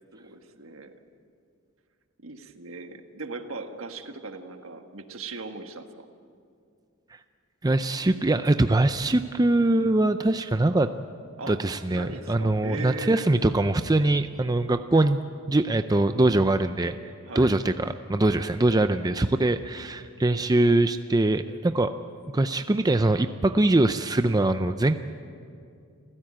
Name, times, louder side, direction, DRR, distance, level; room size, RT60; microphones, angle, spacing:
voice 1, 0.1-0.9 2.2-6.1 11.4-11.6 11.9-13.3 17.3-17.5 18.9-19.4, right 3 dB, 70° right, 6 dB, 1.6 m, -39 dB
voice 2, 7.6-10.9 11.5-15.2 15.5-16.9 17.3-21.9 22.3-25.0, right 2 dB, 20° right, 9 dB, 0.5 m, -22 dB
28.0 x 15.5 x 8.9 m, 2.4 s
head